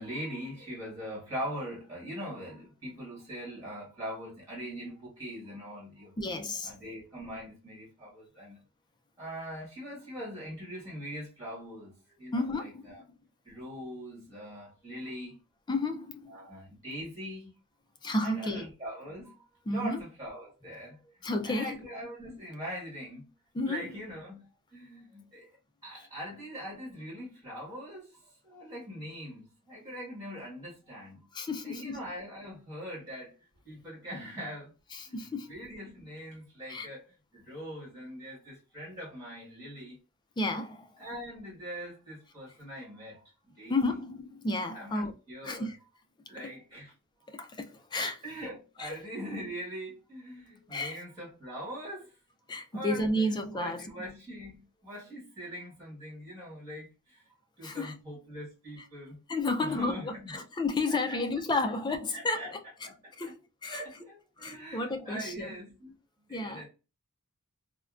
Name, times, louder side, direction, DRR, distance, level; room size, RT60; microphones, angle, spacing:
voice 1, 0.0-6.1 6.6-8.6 9.2-13.0 13.4-15.4 16.3-17.6 18.2-23.3 23.7-24.5 24.7-25.4 25.8-31.3 31.6-33.3 33.6-34.7 35.1-35.2 35.5-37.0 37.3-40.0 41.0-44.0 44.7-45.7 46.3-46.9 48.2-52.2 52.7-57.2 57.6-59.2 59.6-60.4 61.1-61.2 61.6-61.7 62.1-62.5 62.8-63.3 63.7-66.0 66.3-66.7, equal, 15° right, 1.3 m, -42 dB
voice 2, 6.2-6.7 12.3-13.2 15.7-16.4 18.0-18.6 19.7-20.0 21.2-21.8 23.5-23.9 31.3-32.0 34.9-35.5 36.7-36.9 40.4-40.9 43.7-45.1 45.4-45.8 46.4-46.5 47.3-48.2 48.8-49.0 50.7-51.0 52.5-53.8 57.6-58.0 59.3-62.6 63.2-63.8 64.4-65.5 66.3-66.7, left 2 dB, 20° left, 0.3 m, -32 dB
3.5 x 2.1 x 2.3 m
head